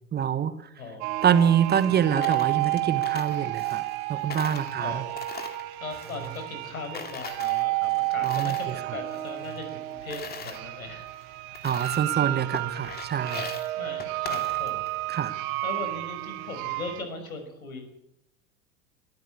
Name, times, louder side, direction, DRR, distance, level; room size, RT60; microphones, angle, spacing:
voice 1, 0.1-0.5 1.2-3.8 4.1-5.0 8.2-8.5 11.6-13.5 15.1-15.4, right 8 dB, 25° right, 13 dB, 1.4 m, -25 dB
voice 2, 0.8-1.5 4.7-5.2 5.8-11.1 11.5-11.7 12.2-12.5 13.8-14.9 15.6-17.8, left 3 dB, 80° left, 7 dB, 6.0 m, -39 dB
sound 1, 1.0-17.0, right 20 dB, 45° right, 1.5 m, -31 dB
Coin (dropping), 1.2-4.0 4.3-6.7 6.9-8.8 9.1-10.6 11.1-11.2 11.5-12.2 12.5-15.0, left 5 dB, 20° left, 2.6 m, -41 dB
22.0 x 14.5 x 8.4 m, 0.80 s
figure-of-eight pair, 85°, 42 cm